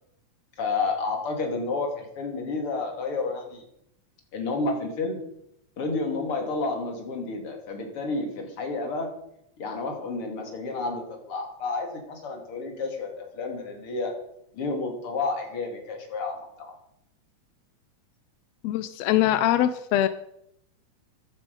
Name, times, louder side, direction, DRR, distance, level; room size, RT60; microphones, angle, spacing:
voice 1, 0.6-3.6 4.3-5.2 5.8-9.1 9.6-14.1 14.5-16.7, left 3 dB, 45° left, 4 dB, 3.1 m, -30 dB
voice 2, 18.6-20.1, left 13 dB, 80° left, 12 dB, 1.5 m, -22 dB
14.0 x 11.0 x 5.3 m, 0.76 s
omnidirectional pair, 3.5 m